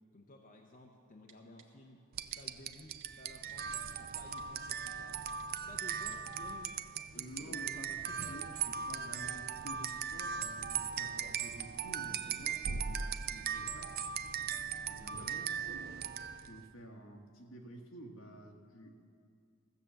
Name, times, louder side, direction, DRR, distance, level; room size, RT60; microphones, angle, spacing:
voice 1, 0.1-2.0 2.4-5.2 5.7-8.5, left 2 dB, 40° left, 1 dB, 0.8 m, -55 dB
Typing, 1.3-1.7 2.3-2.4 2.7-3.1 3.5-3.8 4.4-4.5 5.3-5.6 5.9-6.4 6.7-6.8, right 8 dB, 75° right, 1.0 m, -59 dB
sound 1, 2.1-16.6, right 7 dB, 45° right, 0.4 m, -39 dB
voice 2, 7.1-14.0 14.8-15.5 16.4-19.0, equal, 70° left, 1 dB, 1.5 m, -51 dB
14.5 x 7.7 x 6.9 m, 2.2 s
head